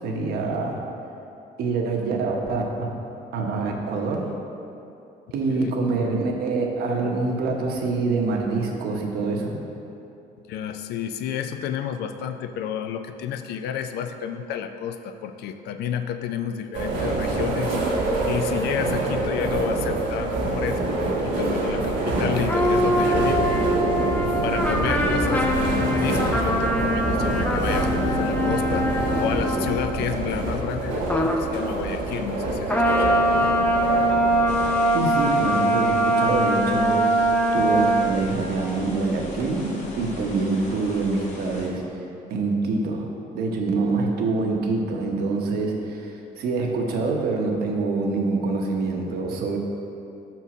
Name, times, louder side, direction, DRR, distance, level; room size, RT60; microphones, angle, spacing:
voice 1, 0.0-0.8 1.6-2.9 3.3-4.3 5.3-9.7 34.9-41.8 42.3-43.1 43.3-49.6, right 3 dB, 70° right, 1 dB, 1.0 m, -25 dB
voice 2, 10.5-17.8 18.3-23.5 24.4-33.2, left 8 dB, 75° left, 8 dB, 0.4 m, -30 dB
sound 1, 16.7-34.7, right 2 dB, 85° right, 1.2 m, -26 dB
sound 2, 22.5-30.0 31.1-31.5 32.7-38.0, equal, 10° left, 0.5 m, -23 dB
sound 3, 34.5-41.7, left 1 dB, 45° left, 1.4 m, -38 dB
5.4 x 4.5 x 6.0 m, 2.8 s
cardioid pair, 110°, 17 cm